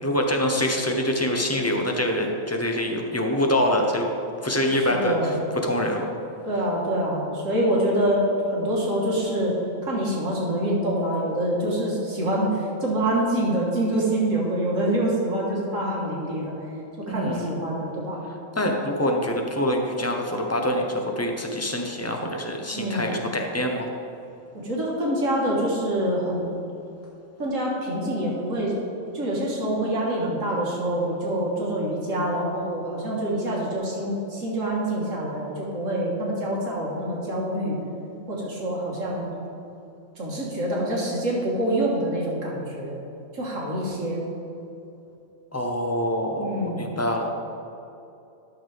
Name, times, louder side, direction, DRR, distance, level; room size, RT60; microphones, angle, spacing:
voice 1, 0.0-4.1 4.4-5.4 5.6-6.1 17.1-17.5 18.6-23.9 45.5-47.3, left 1 dB, 15° left, 2 dB, 0.6 m, -25 dB
voice 2, 4.8-5.3 6.5-9.5 9.8-16.5 17.0-18.2 22.7-23.1 24.5-26.5 27.4-28.8 29.1-37.8 38.3-39.3 40.2-43.0 43.3-44.2 46.4-46.9, right 1 dB, 65° right, -4 dB, 1.9 m, -26 dB
12.5 x 6.4 x 3.5 m, 2.8 s
omnidirectional pair, 1.5 m